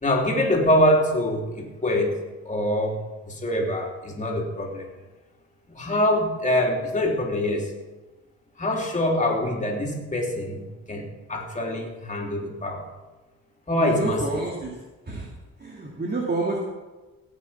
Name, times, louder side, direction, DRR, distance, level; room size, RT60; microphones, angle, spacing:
voice 1, 0.0-2.1 2.4-3.0 3.2-4.9 5.7-7.7 8.6-12.9 13.7-14.4, left 1 dB, 25° left, 0 dB, 3.3 m, -24 dB
voice 2, 13.8-14.7 15.1-15.3 15.6-16.6, right 2 dB, 30° right, -3 dB, 2.6 m, -28 dB
18.0 x 7.4 x 5.8 m, 1.2 s
cardioid pair, 90°, 30 cm